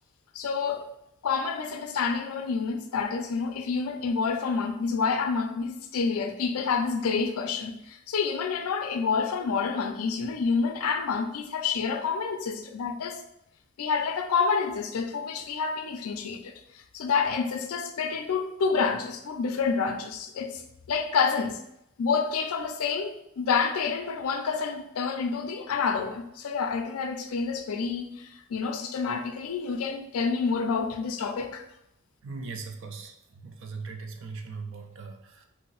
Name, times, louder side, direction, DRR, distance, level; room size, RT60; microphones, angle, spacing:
voice 1, 0.3-0.9 1.2-13.2 13.8-16.5 16.9-21.6 22.0-31.6, left 5 dB, 75° left, 6 dB, 0.4 m, -28 dB
voice 2, 32.2-35.5, right 4 dB, 55° right, 5 dB, 0.4 m, -39 dB
2.7 x 2.0 x 3.9 m, 0.80 s
head